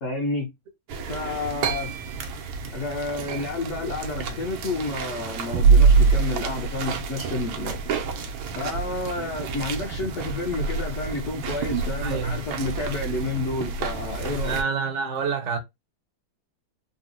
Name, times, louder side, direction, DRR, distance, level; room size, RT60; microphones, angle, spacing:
voice 1, 0.0-0.5 1.0-1.9 2.7-7.8 8.6-14.6, left 3 dB, 60° left, 0.8 m, -30 dB
sound 1, 0.9-14.6, right 5 dB, 85° right, 1.4 m, -26 dB
voice 2, 12.0-12.4 14.4-15.6, right 5 dB, 60° right, 0.7 m, -27 dB
4.0 x 2.0 x 2.6 m
omnidirectional pair, 2.1 m